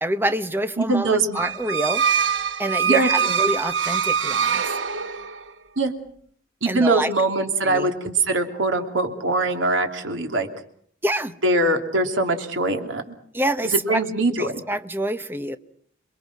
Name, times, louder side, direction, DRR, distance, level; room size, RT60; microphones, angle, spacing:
voice 1, 0.0-2.0 2.6-4.6 6.7-7.1 7.6-7.9 11.0-11.3 13.3-14.0 14.4-15.6, right 1 dB, 10° right, 11 dB, 1.0 m, -26 dB
voice 2, 0.8-1.4 2.9-3.3 5.8-5.9 6.6-10.5 11.4-13.1 13.6-14.6, right 2 dB, 90° right, 5 dB, 2.9 m, -22 dB
sound 1, 1.3-5.5, right 7 dB, 70° right, 1.1 m, -23 dB
27.0 x 22.5 x 6.1 m, 0.62 s
head